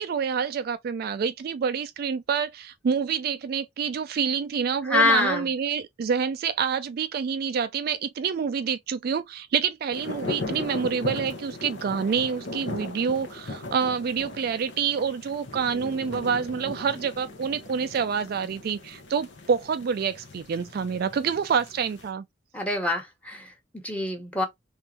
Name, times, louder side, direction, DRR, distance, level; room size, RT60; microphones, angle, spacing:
voice 1, 0.0-22.2, right 6 dB, 55° right, 0.3 m, -27 dB
voice 2, 4.8-5.5 22.5-24.5, left 2 dB, 10° left, 1.1 m, -25 dB
sound 1, 9.9-22.1, left 2 dB, 70° left, 1.0 m, -38 dB
3.6 x 3.0 x 2.8 m
head